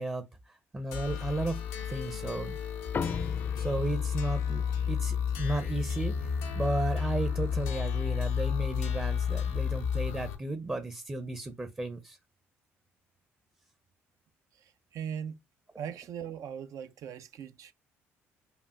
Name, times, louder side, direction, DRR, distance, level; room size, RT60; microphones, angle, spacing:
voice 1, 0.0-1.6 1.9-2.6 3.6-4.6 4.9-12.2, right 2 dB, 20° right, 0.6 m, -34 dB
sound 1, 0.9-10.3, left 7 dB, 80° left, 0.6 m, -31 dB
sound 2, 2.9-7.7, left 5 dB, 30° left, 0.3 m, -41 dB
voice 2, 14.5-15.4 15.8-17.7, right 8 dB, 60° right, 0.4 m, -40 dB
5.0 x 2.4 x 2.3 m
hypercardioid pair, 60°, 6 cm